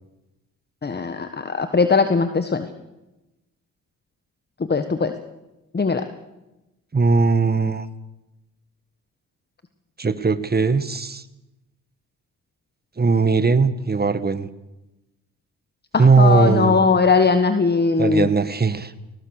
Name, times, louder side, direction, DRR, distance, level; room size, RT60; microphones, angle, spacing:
voice 1, 0.8-2.6 4.7-5.1 5.7-6.0 15.9-18.3, left 4 dB, 30° left, 9 dB, 1.5 m, -19 dB
voice 2, 6.9-7.9 10.0-11.2 13.0-14.5 16.0-16.9 18.0-18.9, right 4 dB, 25° right, 14 dB, 1.5 m, -18 dB
21.0 x 19.0 x 6.6 m, 0.99 s
supercardioid pair, 60°, 35 cm